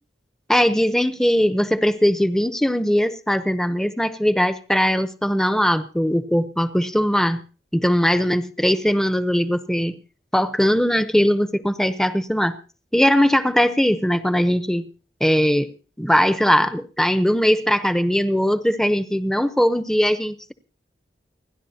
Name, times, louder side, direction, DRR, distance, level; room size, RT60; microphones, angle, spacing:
voice 1, 0.5-7.4 7.7-10.0 10.3-12.6 12.9-14.9 15.2-15.7 16.0-20.5, equal, 5° left, 0.8 m, -20 dB
29.0 x 11.0 x 2.9 m
head